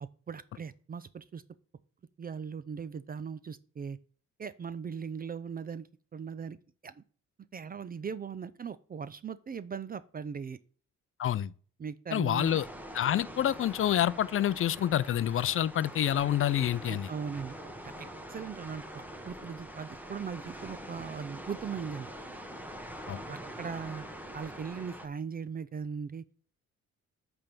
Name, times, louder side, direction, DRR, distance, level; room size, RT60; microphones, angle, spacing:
voice 1, 0.0-1.4 2.2-4.0 4.4-5.9 6.1-6.6 6.8-7.0 7.5-10.6 11.8-12.6 16.9-17.6 17.8-18.8 19.2-22.1 23.3-24.0 24.3-26.2, right 6 dB, 30° right, 0.4 m, -39 dB
voice 2, 11.2-11.5 12.1-12.7 12.9-17.1 23.1-23.2, left 11 dB, 45° left, 0.5 m, -27 dB
sound 1, 12.4-25.1, right 1 dB, 5° right, 1.2 m, -44 dB
8.6 x 3.5 x 5.9 m
cardioid pair, 90°, 30 cm